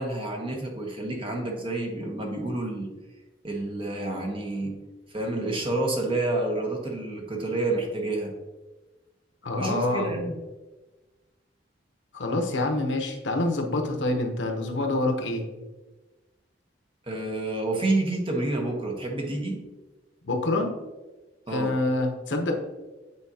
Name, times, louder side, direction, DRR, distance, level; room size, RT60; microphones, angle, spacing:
voice 1, 0.0-2.9 3.4-4.8 5.1-8.3 9.6-10.3 17.1-19.6 21.5-21.7, right 2 dB, 30° right, 1 dB, 1.0 m, -29 dB
voice 2, 9.4-10.2 12.1-15.4 20.2-20.7 21.5-22.5, left 2 dB, 75° left, 3 dB, 0.9 m, -26 dB
8.4 x 4.2 x 2.8 m, 1.2 s
head